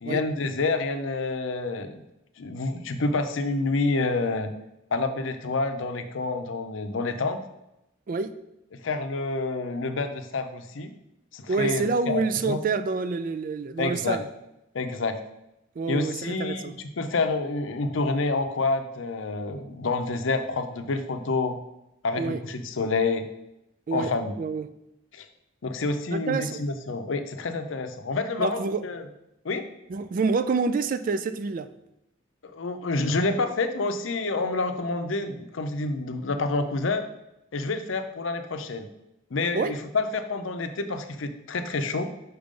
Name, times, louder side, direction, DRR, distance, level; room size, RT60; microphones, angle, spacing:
voice 1, 0.0-2.0 2.4-4.5 4.9-7.4 8.8-10.9 11.3-12.6 13.8-14.2 14.7-15.2 15.9-21.6 22.0-23.3 23.9-24.3 25.1-25.3 25.6-29.0 29.4-29.6 32.4-37.0 37.5-38.9 39.3-42.1, left 3 dB, 75° left, 8 dB, 0.6 m, -28 dB
voice 2, 11.5-14.2 15.8-16.7 22.2-22.4 23.9-24.1 24.4-24.7 26.1-26.6 28.4-28.8 29.9-31.7 39.5-39.8, right 4 dB, 45° right, 12 dB, 0.3 m, -27 dB
5.8 x 3.7 x 5.1 m, 0.86 s
head